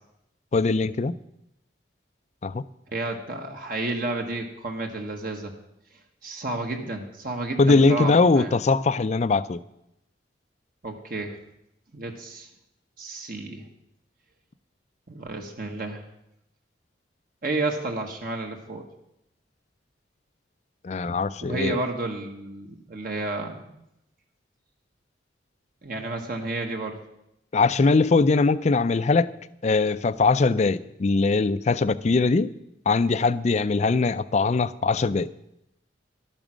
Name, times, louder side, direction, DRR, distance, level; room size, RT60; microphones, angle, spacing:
voice 1, 0.5-1.1 2.4-2.6 7.6-9.6 20.8-21.7 27.5-29.3 29.6-32.5 32.9-35.3, left 3 dB, 40° left, 16 dB, 0.4 m, -21 dB
voice 2, 2.9-5.5 6.2-8.5 10.8-11.4 11.9-12.5 13.0-13.7 15.1-16.0 17.4-18.8 21.4-23.8 25.8-27.0, right 2 dB, 50° right, 3 dB, 1.2 m, -31 dB
12.0 x 8.9 x 6.2 m, 0.83 s
head